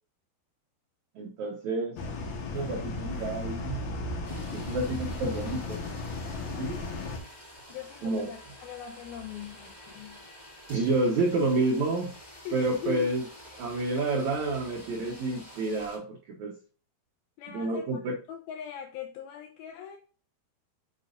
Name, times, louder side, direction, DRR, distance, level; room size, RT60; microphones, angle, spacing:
voice 1, 1.2-2.0 2.5-3.8 4.3-5.9 6.6-6.8 8.0-8.3 10.7-12.1 12.5-13.2 13.6-16.5 17.5-18.2, right 2 dB, 85° right, 1 dB, 1.6 m, -29 dB
sound 1, 2.0-7.2, left 2 dB, 60° left, 2.1 m, -35 dB
sound 2, 4.2-16.0, equal, 10° left, 4.2 m, -49 dB
voice 2, 7.7-10.2 12.4-13.1 17.4-20.0, left 9 dB, 80° left, 4 dB, 2.3 m, -41 dB
8.2 x 7.6 x 2.6 m, 0.38 s
omnidirectional pair, 5.0 m